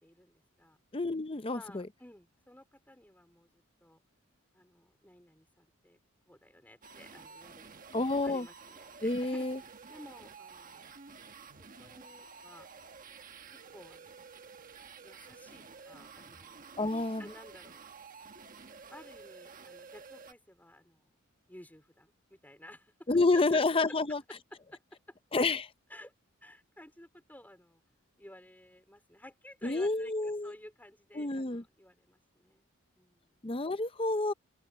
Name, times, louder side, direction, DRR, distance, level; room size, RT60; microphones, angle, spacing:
voice 1, 0.0-0.8 1.5-4.0 4.5-6.0 6.3-9.5 9.9-10.9 11.8-12.7 13.5-14.2 15.0-16.5 16.9-17.8 18.9-21.1 21.5-22.9 23.3-23.6 23.9-24.0 24.5-25.2 25.9-26.1 26.4-27.8 28.2-32.7 33.0-33.4, left 1 dB, 10° left, 4.4 m, -54 dB
voice 2, 0.9-1.9 7.9-8.5 9.0-9.6 16.8-17.2 23.1-24.2 25.3-25.7 29.6-30.5 31.2-31.6 33.4-34.3, left 3 dB, 25° left, 0.7 m, -29 dB
sound 1, 6.8-20.3, right 5 dB, 40° right, 1.3 m, -51 dB
open air
head